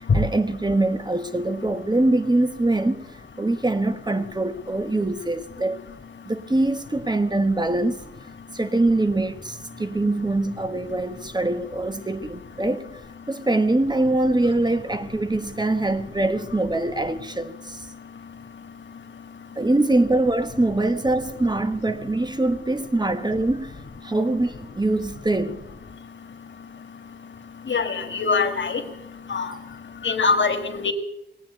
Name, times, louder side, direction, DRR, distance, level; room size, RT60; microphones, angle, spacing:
voice 1, 0.0-3.1 3.4-5.8 6.3-8.0 8.5-12.9 13.3-17.9 19.6-23.7 24.0-25.7, right 2 dB, 25° right, 1.3 m, -23 dB
voice 2, 27.7-28.8 29.3-29.5 30.0-30.9, left 4 dB, 90° left, 1.6 m, -23 dB
19.5 x 8.9 x 8.0 m
wide cardioid pair, 60°, 19 cm